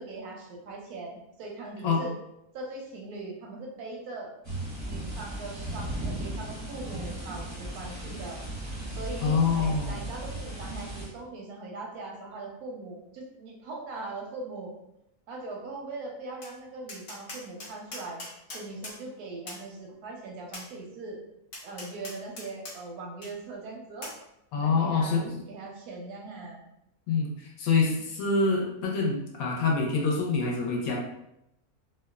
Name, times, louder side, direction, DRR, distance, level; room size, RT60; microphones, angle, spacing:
voice 1, 0.0-2.1 2.5-4.3 4.8-8.4 8.9-14.7 15.3-18.2 18.5-21.2 21.6-24.1 24.5-25.2 25.5-26.6, right 3 dB, 85° right, 0 dB, 1.1 m, -40 dB
sound 1, 4.4-11.1, right 1 dB, 20° right, 0.4 m, -36 dB
voice 2, 9.2-10.0 24.5-25.4 27.1-31.0, left 4 dB, 75° left, 0 dB, 1.0 m, -26 dB
Tap, 16.4-16.5 16.9-19.0 19.5-19.6 20.5-20.7 21.5-22.8 23.2-23.3 24.0-24.2, left 2 dB, 55° left, 0.7 m, -41 dB
2.9 x 2.0 x 2.3 m, 0.82 s
omnidirectional pair, 1.6 m